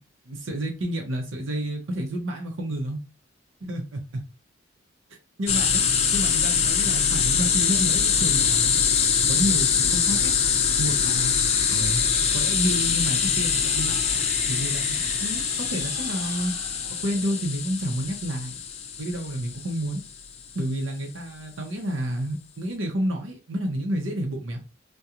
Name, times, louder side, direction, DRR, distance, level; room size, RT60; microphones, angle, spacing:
voice 1, 0.3-3.0 3.6-3.8 5.4-5.8 6.1-8.7 9.3-10.4 10.8-11.3 11.7-12.0 12.3-14.0 14.5-16.5 16.8-18.6 19.0-20.0 20.5-24.6, right 1 dB, 90° right, 0.7 m, -30 dB
sound 1, 5.5-20.0, left 7 dB, 35° left, 0.3 m, -23 dB
sound 2, 11.8-17.6, right 7 dB, 55° right, 0.4 m, -41 dB
2.8 x 2.2 x 2.4 m
head